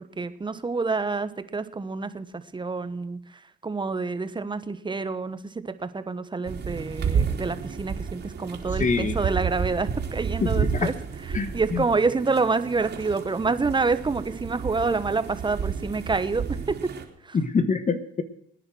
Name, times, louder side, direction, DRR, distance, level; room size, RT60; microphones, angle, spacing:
voice 1, 0.2-10.9 11.3-16.8 17.2-17.4, right 4 dB, 25° right, 12 dB, 1.2 m, -27 dB
sound 1, 6.5-17.0, right 6 dB, 60° right, 3.3 m, -31 dB
voice 2, 8.8-9.1 10.4-10.9 11.3-11.8 17.3-18.2, left 5 dB, 40° left, 10 dB, 1.4 m, -25 dB
20.0 x 9.9 x 6.3 m, 0.69 s
cardioid pair, 90°, 20 cm